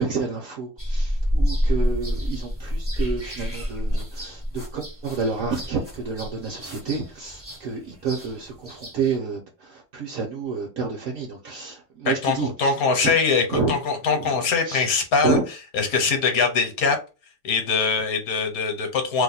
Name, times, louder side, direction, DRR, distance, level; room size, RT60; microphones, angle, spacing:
voice 1, 0.0-13.1 13.5-13.7 14.1-14.9 15.2-15.4, right 5 dB, 65° right, 1.0 m, -29 dB
sound 1, 0.8-9.2, equal, 15° right, 0.5 m, -28 dB
voice 2, 12.0-15.4 15.7-17.0 17.4-19.2, left 5 dB, 65° left, 1.2 m, -22 dB
2.8 x 2.2 x 4.0 m
omnidirectional pair, 1.7 m